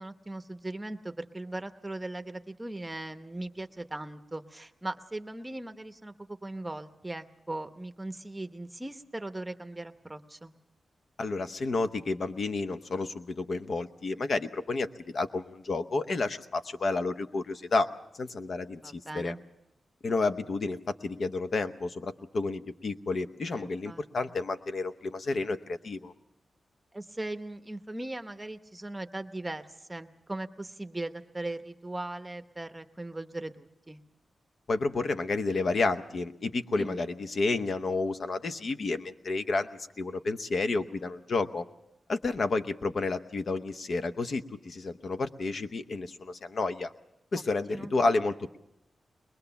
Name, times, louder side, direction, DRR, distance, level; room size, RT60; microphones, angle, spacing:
voice 1, 0.0-10.5 18.7-19.4 23.5-24.0 26.9-29.6 29.9-34.0 36.7-37.1 47.3-47.4 47.7-47.9, right 2 dB, 15° right, 9 dB, 0.8 m, -39 dB
voice 2, 11.2-17.9 18.1-19.4 20.0-26.1 34.7-39.7 40.0-41.6 42.1-46.9 47.3-48.6, left 3 dB, 55° left, 10 dB, 0.8 m, -30 dB
22.0 x 21.5 x 6.9 m, 0.83 s
wide cardioid pair, 145°, 0 cm